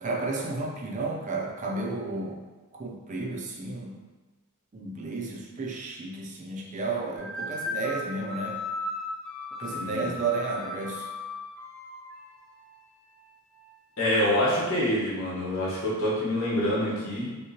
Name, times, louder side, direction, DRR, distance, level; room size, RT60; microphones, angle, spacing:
voice 1, 0.0-2.4 2.7-3.9 4.7-8.6 9.6-11.1, right 3 dB, 35° right, -1 dB, 0.4 m, -32 dB
sound 1, 7.2-12.2, left 2 dB, 5° left, 0.7 m, -36 dB
voice 2, 9.7-10.1 14.0-17.3, left 1 dB, 70° left, -7 dB, 1.2 m, -26 dB
3.6 x 2.9 x 2.8 m, 1.2 s
head